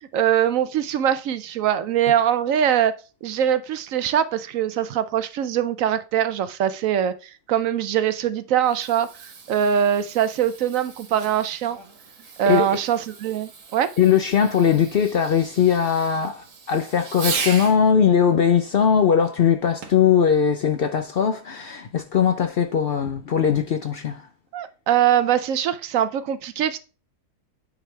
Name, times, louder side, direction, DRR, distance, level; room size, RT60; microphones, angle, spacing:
voice 1, 0.1-2.9 3.2-7.1 7.5-9.1 9.5-11.8 12.4-13.9 24.5-26.8, right 9 dB, 65° right, 0.9 m, -22 dB
Fireworks, 8.5-17.8 19.8-20.1 20.8-20.9, right 5 dB, 85° right, 1.9 m, -36 dB
voice 2, 14.0-24.2, left 7 dB, 75° left, 0.5 m, -20 dB
9.2 x 5.0 x 3.3 m
omnidirectional pair, 1.7 m